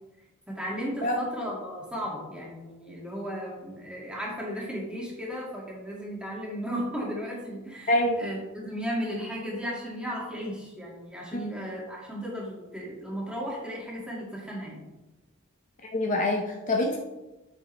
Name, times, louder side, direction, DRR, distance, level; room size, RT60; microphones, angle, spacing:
voice 1, 0.5-14.8, equal, 5° right, -4 dB, 2.1 m, -35 dB
voice 2, 7.9-8.2 15.9-17.0, left 1 dB, 35° left, 1 dB, 0.7 m, -25 dB
8.9 x 6.4 x 3.3 m, 1.1 s
head